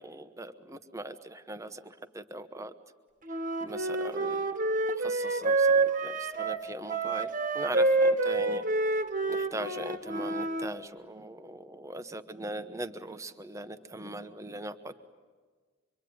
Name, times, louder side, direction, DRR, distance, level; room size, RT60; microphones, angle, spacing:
voice 1, 0.0-2.7 3.6-4.4 5.0-8.6 8.9-9.0 9.3-14.9, right 1 dB, 15° right, 9 dB, 1.1 m, -40 dB
Wind instrument woodwind instrument, 3.3-10.7, right 3 dB, 40° right, 1.6 m, -28 dB
25.0 x 24.5 x 9.6 m, 1.5 s
head